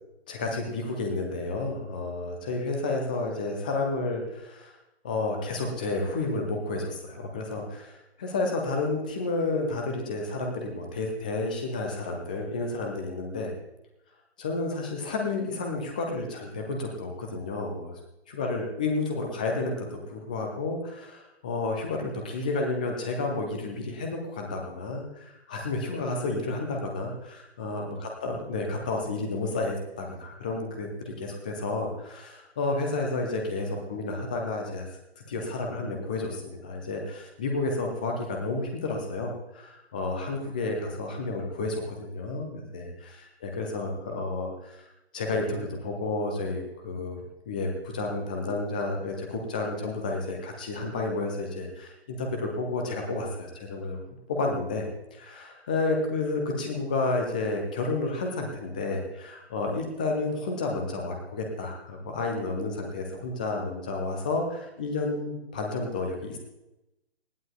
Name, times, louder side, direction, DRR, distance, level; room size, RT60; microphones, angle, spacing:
voice 1, 0.3-4.7 5.0-13.5 14.4-18.0 18.3-34.9 35.3-44.8 45.1-54.0 54.3-66.4, left 3 dB, 10° left, 2 dB, 0.6 m, -31 dB
19.5 x 14.5 x 2.3 m, 0.93 s
figure-of-eight pair, 140°, 33 cm